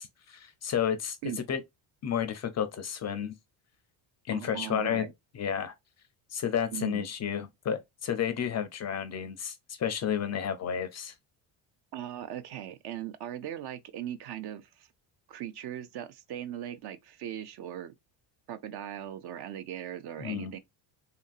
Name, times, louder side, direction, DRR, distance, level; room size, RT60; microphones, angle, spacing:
voice 1, 0.0-1.2 1.5-1.6 2.0-3.3 4.3-5.0 5.3-5.7 6.3-11.1 20.2-20.5, left 8 dB, 35° left, 0.4 m, -31 dB
voice 2, 4.3-5.1 6.7-7.1 11.9-14.9 15.3-17.9 18.5-20.6, right 11 dB, 55° right, 0.5 m, -39 dB
2.9 x 2.5 x 2.3 m
cardioid pair, 110°, 48 cm